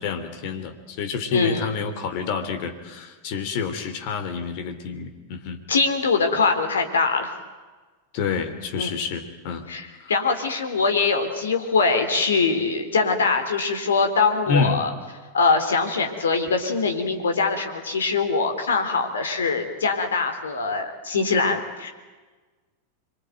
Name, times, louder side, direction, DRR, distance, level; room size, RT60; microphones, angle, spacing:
voice 1, 0.0-5.6 8.1-9.7 10.0-10.1 14.5-14.8, left 5 dB, 45° left, 7 dB, 3.3 m, -28 dB
voice 2, 1.3-1.7 5.7-7.3 8.8-8.9 9.7-14.9 15.3-21.9, left 4 dB, 65° left, 6 dB, 3.8 m, -23 dB
26.0 x 23.5 x 9.3 m, 1.3 s
figure-of-eight pair, 90°, 0 cm